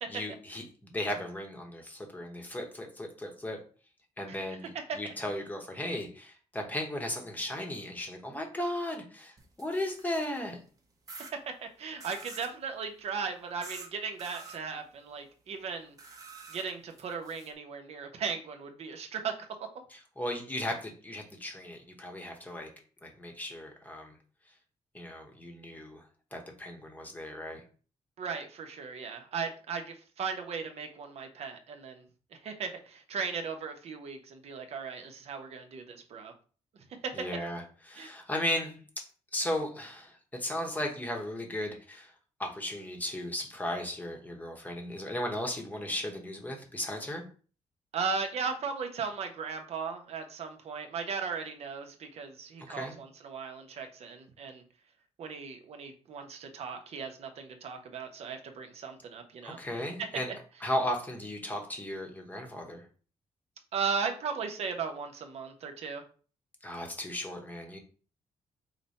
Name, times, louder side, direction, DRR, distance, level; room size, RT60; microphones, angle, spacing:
voice 1, 0.1-3.6 4.2-4.7 4.9-10.6 19.9-22.7 23.0-24.2 24.9-26.0 26.3-27.6 37.1-39.1 39.3-42.1 42.4-47.3 52.7-53.0 59.4-60.3 60.6-62.8 66.6-67.8, left 1 dB, 15° left, 2 dB, 0.9 m, -36 dB
sound 1, 9.4-10.5 11.1-11.3 12.0-12.5 13.6-13.9 14.2-14.6 16.0-17.5, right 4 dB, 30° right, 0.8 m, -47 dB
voice 2, 11.5-15.9 16.5-19.5 28.2-32.0 32.3-36.3 36.7-37.1 38.0-38.1 47.9-54.6 55.2-59.6 63.7-66.0, right 5 dB, 60° right, 5 dB, 0.8 m, -37 dB
4.9 x 2.2 x 4.0 m, 0.40 s
cardioid pair, 135°, 12 cm